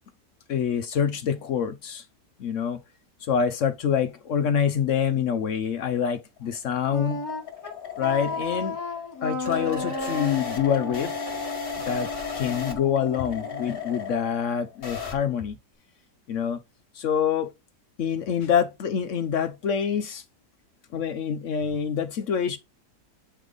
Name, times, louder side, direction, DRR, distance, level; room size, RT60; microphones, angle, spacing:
voice 1, 0.5-2.0 2.4-2.8 3.2-7.2 8.0-8.8 9.2-11.1 11.9-15.6 16.3-16.6 16.9-17.5 18.0-20.2 20.9-22.6, left 8 dB, 60° left, 0.8 m, -26 dB
sound 1, 6.2-15.2, left 6 dB, 35° left, 1.8 m, -35 dB
Wind instrument woodwind instrument, 6.9-13.8, left 1 dB, 10° left, 1.3 m, -34 dB
8.8 x 3.3 x 3.8 m
omnidirectional pair, 1.8 m